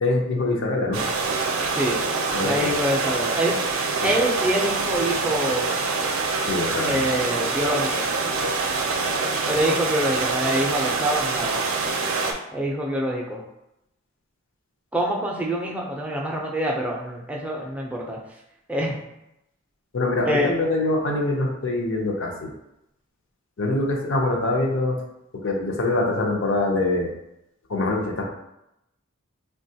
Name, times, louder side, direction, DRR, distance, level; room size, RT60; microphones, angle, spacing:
voice 1, 0.0-1.0 2.3-2.7 4.0-4.1 6.5-7.1 19.9-22.5 23.6-25.0 25.3-27.1 27.7-28.2, left 2 dB, 65° left, 0 dB, 0.5 m, -24 dB
sound 1, 0.9-12.3, right 4 dB, 75° right, 0.4 m, -25 dB
voice 2, 2.4-3.5 4.0-5.6 6.8-8.1 9.5-11.6 12.5-13.4 14.9-18.2 18.7-19.0 20.3-20.5, equal, 5° right, -2 dB, 0.4 m, -25 dB
3.6 x 2.2 x 2.7 m, 0.86 s
head